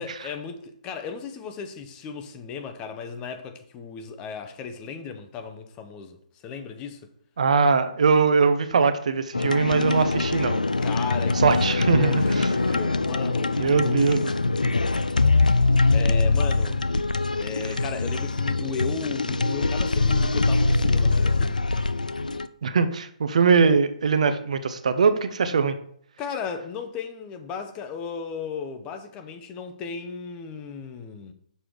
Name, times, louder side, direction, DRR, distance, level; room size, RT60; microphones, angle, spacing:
voice 1, 0.0-6.2 6.4-7.1 10.8-11.4 11.7-14.0 15.9-16.8 17.4-21.5 26.2-31.3, left 6 dB, 20° left, 0.6 m, -35 dB
voice 2, 7.4-10.6 11.4-12.5 13.6-14.3 22.6-25.8, right 5 dB, 55° right, 0.6 m, -21 dB
sound 1, 9.3-22.5, left 3 dB, 85° left, 0.3 m, -23 dB
6.6 x 4.8 x 3.1 m
figure-of-eight pair, 135°, 4 cm